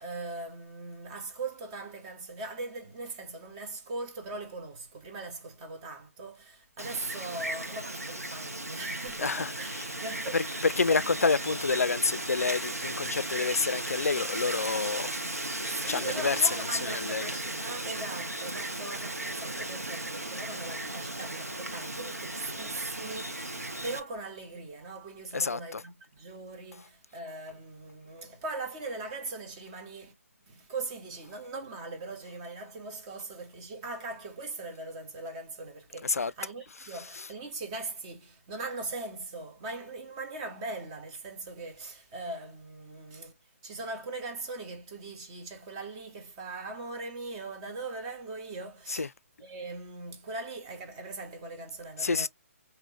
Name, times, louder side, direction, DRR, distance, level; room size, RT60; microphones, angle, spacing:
voice 1, 0.0-11.1 15.7-30.1 30.5-43.3 43.6-49.1 49.4-52.3, right 3 dB, 25° right, 1.2 m, -40 dB
Wind, 6.8-24.0, right 1 dB, 85° right, 1.0 m, -36 dB
voice 2, 9.2-9.5 10.3-15.1 15.7-17.3 25.3-25.8 36.0-36.3 37.1-37.3 48.9-49.1 52.0-52.3, left 4 dB, 75° left, 0.4 m, -28 dB
3.6 x 3.0 x 2.9 m
figure-of-eight pair, 140°, 8 cm